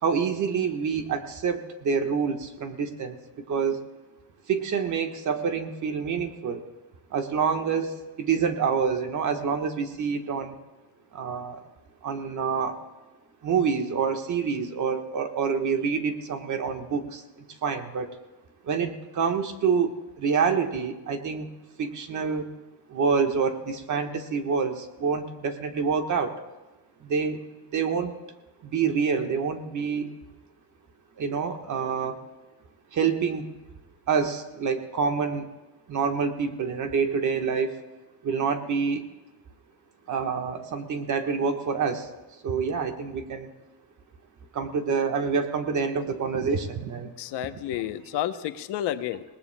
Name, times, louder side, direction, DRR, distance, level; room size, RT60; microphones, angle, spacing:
voice 1, 0.0-3.2 3.5-3.8 4.5-6.6 7.1-10.6 11.1-11.6 12.0-12.8 13.4-17.2 17.6-18.1 18.6-21.5 21.8-22.5 22.9-26.3 27.0-27.4 27.7-28.1 28.6-30.1 31.2-32.2 32.9-33.5 34.1-35.5 35.9-37.7 38.2-39.1 40.1-42.1 42.4-43.5 44.5-47.1, right 6 dB, 45° right, 6 dB, 1.3 m, -27 dB
voice 2, 47.2-49.2, left 12 dB, 80° left, 10 dB, 0.8 m, -30 dB
27.0 x 19.0 x 2.2 m, 1.1 s
cardioid pair, 150°, 41 cm